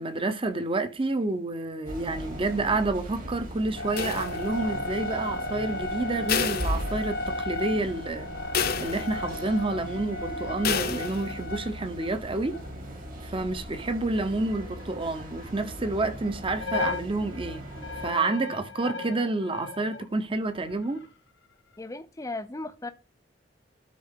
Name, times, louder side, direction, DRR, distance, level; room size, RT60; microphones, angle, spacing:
voice 1, 0.0-8.3 8.8-12.6 13.2-17.7 18.0-21.0, right 2 dB, 30° right, 0.9 m, -29 dB
sound 1, 1.9-18.1, equal, 50° right, 2.6 m, -39 dB
sound 2, 3.8-13.6 13.9-16.1 16.4-20.0 20.5-21.1, left 2 dB, 85° left, 1.5 m, -36 dB
sound 3, 4.0-4.8 6.3-7.4 7.8-7.9 8.5-9.4 10.6-11.4, left 6 dB, 55° left, 0.7 m, -30 dB
voice 2, 21.8-22.9, left 2 dB, 20° left, 0.6 m, -36 dB
12.5 x 4.4 x 3.7 m
head